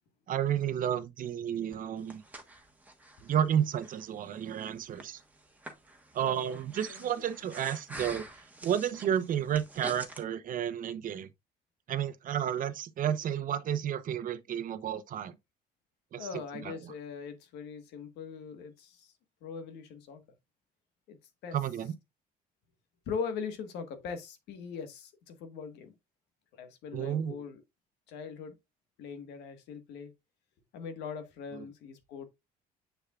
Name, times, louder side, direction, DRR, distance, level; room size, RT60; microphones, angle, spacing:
voice 1, 0.3-2.2 3.2-5.2 6.1-8.3 8.6-11.3 11.9-15.3 16.1-16.9 21.5-21.9 26.9-27.4 31.6-31.7, right 9 dB, 55° right, 0.8 m, -32 dB
Breathing, 1.7-10.2, right 1 dB, 10° right, 1.3 m, -47 dB
voice 2, 6.2-6.6 7.0-7.2 16.2-19.1 19.4-20.2 21.1-21.2 21.4-21.6 23.1-25.9 26.6-27.6 28.1-28.5 29.0-30.1 30.7-32.3, left 6 dB, 85° left, 1.5 m, -41 dB
7.2 x 6.7 x 2.4 m
cardioid pair, 110°, 17 cm